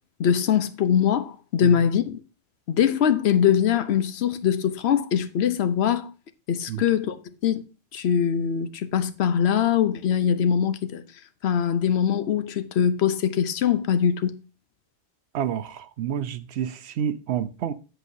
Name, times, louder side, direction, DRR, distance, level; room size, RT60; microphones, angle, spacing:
voice 1, 0.2-2.2 2.7-6.1 6.5-7.6 7.9-11.0 11.4-14.4, left 8 dB, 80° left, 1.0 m, -22 dB
voice 2, 15.3-17.7, right 9 dB, 80° right, 0.9 m, -29 dB
8.1 x 7.8 x 2.6 m
omnidirectional pair, 1.1 m